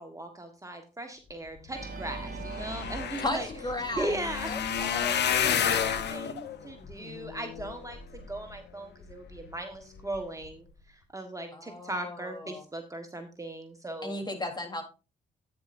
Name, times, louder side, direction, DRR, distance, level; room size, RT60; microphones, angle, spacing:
voice 1, 0.0-3.5 4.0-4.5 5.3-14.2, right 1 dB, 15° right, 5 dB, 1.4 m, -38 dB
Organ, 1.7-4.8, right 3 dB, 50° right, 3.2 m, -42 dB
sound 1, 1.9-2.0 2.2-8.6 9.1-9.5 10.0-10.2 10.4-10.5, left 8 dB, 60° left, 1.0 m, -31 dB
voice 2, 3.2-4.2 4.5-5.4 11.5-12.6 14.0-14.8, left 1 dB, 20° left, 3 dB, 3.4 m, -35 dB
10.5 x 9.1 x 2.6 m, 0.31 s
hypercardioid pair, 50°, 20 cm